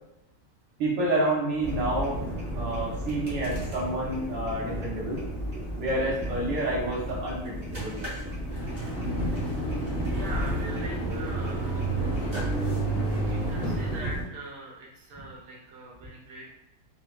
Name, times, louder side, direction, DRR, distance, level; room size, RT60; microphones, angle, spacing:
voice 1, 0.8-2.2 2.5-5.2 5.8-8.1, right 1 dB, 75° right, -5 dB, 1.6 m, -29 dB
sound 1, 1.6-14.2, right 1 dB, 25° right, 0.6 m, -31 dB
Engine, 8.5-14.0, right 1 dB, 70° left, 1.4 m, -38 dB
voice 2, 10.1-11.8 13.3-16.5, right 2 dB, 55° right, -4 dB, 1.0 m, -42 dB
4.3 x 2.2 x 2.3 m, 0.86 s
omnidirectional pair, 2.1 m